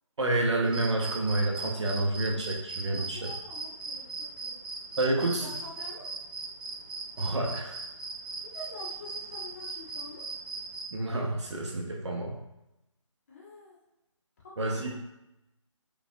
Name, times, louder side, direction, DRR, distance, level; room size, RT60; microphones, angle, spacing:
voice 1, 0.2-3.3 5.0-5.5 7.2-7.8 10.9-12.3 14.6-14.9, right 2 dB, 60° right, 0 dB, 0.9 m, -29 dB
sound 1, 0.7-10.8, right 3 dB, 20° right, 0.4 m, -39 dB
voice 2, 2.9-4.5 5.0-5.1 5.4-6.1 8.5-10.2 13.3-13.8 14.4-15.1, left 2 dB, 25° left, -5 dB, 0.7 m, -47 dB
5.0 x 2.3 x 2.7 m, 0.90 s
figure-of-eight pair, 160°, 17 cm